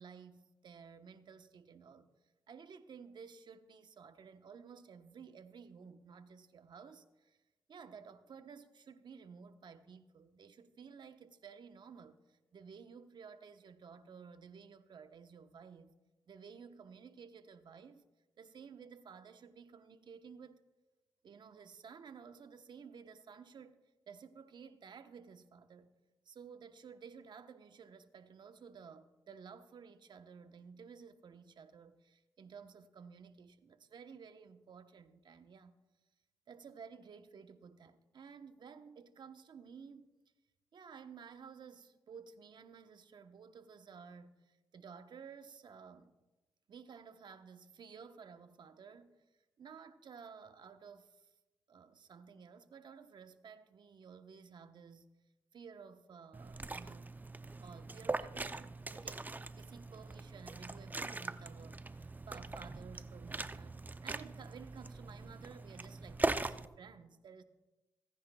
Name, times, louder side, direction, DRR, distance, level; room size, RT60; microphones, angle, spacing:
voice 1, 0.0-2.1 2.5-7.4 7.7-15.9 16.3-18.0 18.4-20.6 21.2-23.8 24.1-25.9 26.2-35.8 36.5-40.1 40.7-46.1 46.7-49.2 49.6-51.3 51.7-55.1 55.5-57.1 57.6-67.4, right 6 dB, 60° right, 1.0 m, -54 dB
Liquid, 56.3-66.7, right 2 dB, 20° right, 0.5 m, -41 dB
26.0 x 10.0 x 2.3 m
supercardioid pair, 55°, 9 cm